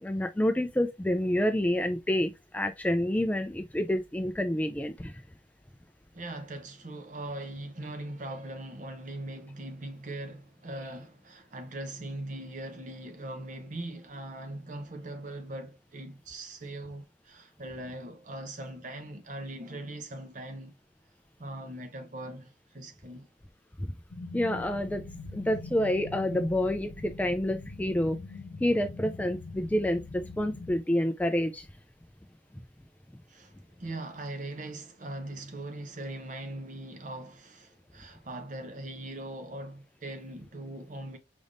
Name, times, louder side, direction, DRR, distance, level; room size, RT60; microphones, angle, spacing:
voice 1, 0.0-5.2 23.8-23.9 24.3-25.0 25.3-28.2 28.6-31.7, left 1 dB, 10° left, 0.3 m, -28 dB
voice 2, 6.1-20.8 21.4-23.3 33.3-41.2, right 1 dB, 40° right, 0.8 m, -40 dB
sound 1, 24.1-30.8, left 2 dB, 80° left, 0.6 m, -43 dB
5.1 x 3.4 x 2.5 m
head